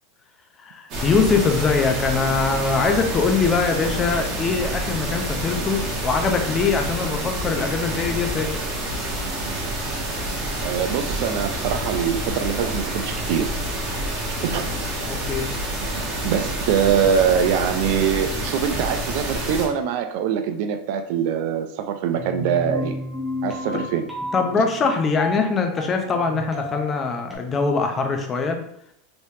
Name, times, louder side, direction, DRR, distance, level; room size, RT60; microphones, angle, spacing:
voice 1, 0.6-8.5 15.1-15.5 24.3-28.6, left 4 dB, 20° left, 5 dB, 0.4 m, -22 dB
sound 1, 0.9-19.7, right 1 dB, 35° right, 1.0 m, -28 dB
voice 2, 10.6-13.5 14.4-14.7 16.0-22.9 23.4-24.1, right 8 dB, 55° right, 7 dB, 0.3 m, -23 dB
sound 2, 22.2-27.4, left 1 dB, 5° right, 0.8 m, -32 dB
3.3 x 3.0 x 2.7 m, 0.72 s
supercardioid pair, 150°, 0 cm